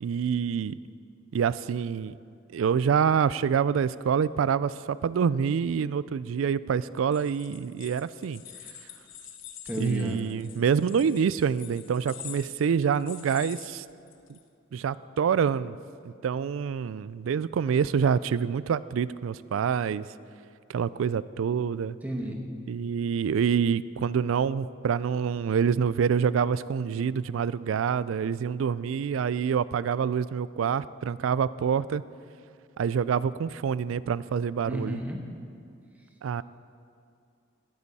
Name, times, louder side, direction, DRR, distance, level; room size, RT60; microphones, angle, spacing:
voice 1, 0.0-0.8 1.3-2.2 2.5-8.4 9.8-13.8 14.3-14.4 14.7-15.8 16.0-20.1 20.7-22.0 22.7-32.0 32.8-35.0 36.2-36.4, right 7 dB, 85° right, 18 dB, 0.3 m, -26 dB
sound 1, 7.0-14.4, left 10 dB, 75° left, 1.0 m, -46 dB
voice 2, 9.6-10.3 22.0-22.4 34.7-35.2, equal, 10° right, 1 dB, 1.3 m, -32 dB
17.5 x 9.8 x 4.2 m, 2.4 s
head